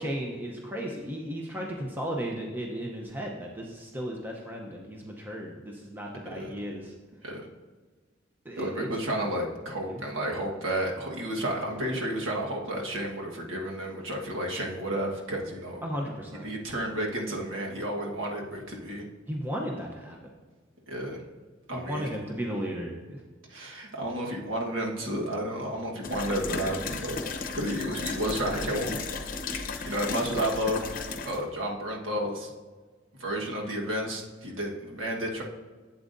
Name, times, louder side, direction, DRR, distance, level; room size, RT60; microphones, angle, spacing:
voice 1, 0.0-6.9 8.4-8.9 9.8-10.0 15.8-16.5 19.3-20.2 20.9-21.0 21.7-23.2, equal, 10° right, -1 dB, 0.7 m, -35 dB
voice 2, 8.6-15.8 16.4-19.0 20.9-21.2 21.7-22.1 23.5-27.2 27.5-29.0 29.8-30.9 31.2-32.5 33.2-35.4, right 1 dB, 85° right, -1 dB, 1.4 m, -31 dB
sound 1, 26.0-31.4, left 4 dB, 45° left, 0.8 m, -35 dB
11.5 x 8.2 x 2.6 m, 1.4 s
head